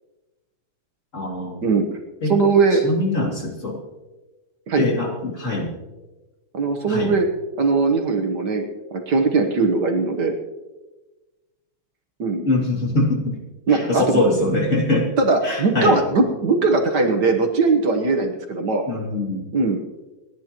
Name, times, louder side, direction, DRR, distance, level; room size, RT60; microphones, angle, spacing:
voice 1, 1.1-1.7 2.2-2.4 2.7-3.8 4.8-5.7 6.9-7.1 12.5-13.4 13.7-15.1 15.4-16.0 18.9-19.5, left 2 dB, 35° left, -2 dB, 2.8 m, -23 dB
voice 2, 2.3-2.8 4.7-4.8 6.5-7.3 7.6-8.6 8.9-10.3 12.2-12.5 13.7-14.2 15.2-18.8 19.5-19.8, right 4 dB, 60° right, 3 dB, 1.7 m, -19 dB
29.5 x 10.0 x 3.0 m, 1.1 s
omnidirectional pair, 2.2 m